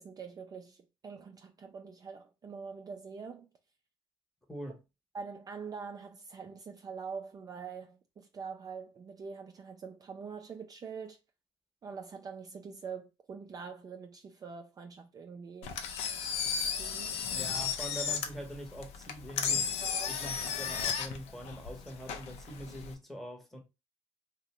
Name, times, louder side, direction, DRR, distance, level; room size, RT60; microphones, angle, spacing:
voice 1, 0.0-3.5 5.1-11.2 11.8-15.8 16.8-17.2 19.8-20.1, right 5 dB, 35° right, 0.4 m, -44 dB
voice 2, 4.5-4.8 17.3-19.7 20.1-23.6, equal, ahead, 0.8 m, -43 dB
Engine, 15.6-22.9, left 7 dB, 80° left, 0.5 m, -34 dB
2.6 x 2.1 x 2.8 m
supercardioid pair, 80°, 11 cm